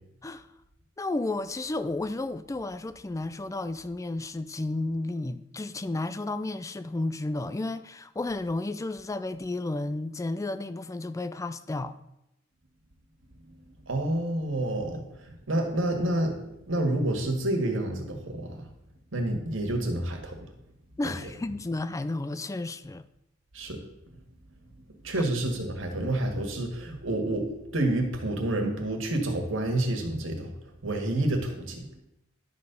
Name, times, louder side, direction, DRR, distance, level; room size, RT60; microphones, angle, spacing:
voice 1, 1.0-12.0 21.0-23.1 25.2-25.3, left 2 dB, 15° left, 0.4 m, -32 dB
voice 2, 13.9-16.3 16.7-18.6 19.1-20.4 23.5-23.8 25.0-30.5 30.8-31.9, right 1 dB, 80° right, 1.9 m, -28 dB
11.5 x 4.3 x 6.8 m
head